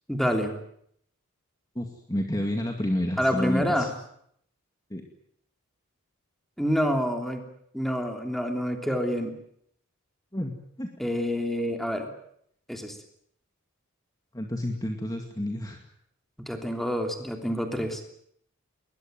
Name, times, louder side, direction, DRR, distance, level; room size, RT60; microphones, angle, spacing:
voice 1, 0.1-0.5 3.2-3.9 6.6-7.4 7.7-9.4 11.0-12.1 12.7-13.0 16.4-18.0, equal, ahead, 4 dB, 3.1 m, -27 dB
voice 2, 1.8-3.9 4.9-5.0 10.3-10.9 14.3-15.8, left 1 dB, 15° left, 3 dB, 2.2 m, -30 dB
21.0 x 20.5 x 9.3 m, 0.71 s
head